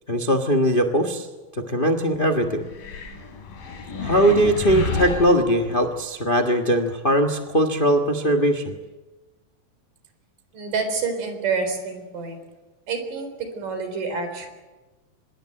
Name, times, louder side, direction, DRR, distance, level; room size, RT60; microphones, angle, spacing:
voice 1, 0.1-1.3 1.5-2.6 4.0-8.7, equal, 65° left, 4 dB, 0.5 m, -20 dB
sound 1, 2.7-6.0, left 4 dB, 85° left, 4.8 m, -31 dB
voice 2, 10.5-12.4 12.9-14.5, right 4 dB, 70° right, 7 dB, 5.6 m, -28 dB
25.0 x 21.5 x 7.9 m, 1.2 s
omnidirectional pair, 3.9 m